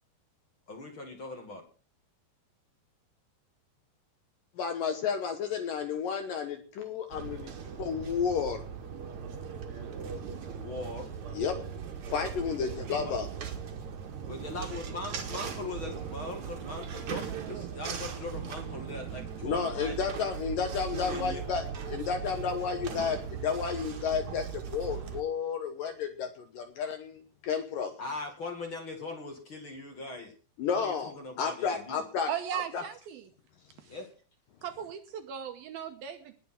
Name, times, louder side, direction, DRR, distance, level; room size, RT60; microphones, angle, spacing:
voice 1, 0.7-1.6 10.6-11.1 13.0-13.1 14.3-20.0 20.9-21.5 28.0-30.3 30.8-32.0 32.7-32.8 33.9-34.1, left 3 dB, 40° left, 3 dB, 2.2 m, -40 dB
voice 2, 4.6-7.5 7.8-8.6 11.3-11.6 12.1-13.3 19.4-21.6 21.9-27.9 30.6-31.1 31.4-32.6, left 6 dB, 65° left, 7 dB, 2.3 m, -32 dB
sound 1, 7.1-25.2, right 7 dB, 50° right, 2.7 m, -39 dB
voice 3, 32.3-33.2 33.8-34.0 34.6-36.3, right 9 dB, 70° right, 7 dB, 2.5 m, -37 dB
20.0 x 6.8 x 6.1 m, 0.38 s
omnidirectional pair, 5.1 m